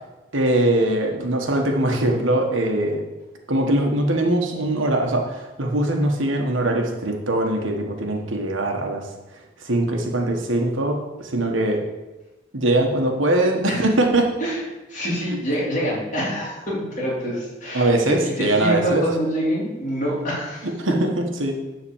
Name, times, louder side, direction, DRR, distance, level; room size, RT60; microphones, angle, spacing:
voice 1, 0.3-3.0 3.5-9.1 9.6-11.8 12.5-14.3 17.7-19.0 20.8-21.1 21.4-21.6, right 1 dB, 85° right, 2 dB, 1.5 m, -21 dB
voice 2, 14.9-20.7, equal, 40° left, -5 dB, 3.2 m, -26 dB
10.0 x 4.1 x 7.2 m, 1.1 s
head